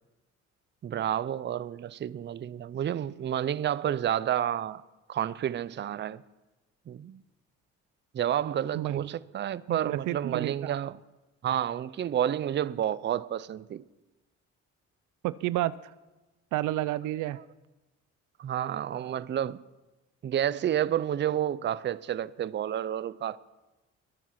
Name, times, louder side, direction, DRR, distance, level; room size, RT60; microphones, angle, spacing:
voice 1, 0.8-4.8 5.1-6.2 6.9-7.2 8.1-10.9 11.4-13.8 18.4-19.6 20.2-23.4, right 10 dB, 35° right, 0.5 m, -30 dB
voice 2, 8.7-9.1 9.7-10.7 15.2-15.7 16.5-17.4, right 15 dB, 85° right, 0.5 m, -30 dB
22.0 x 7.4 x 5.8 m
cardioid pair, 90°, 30 cm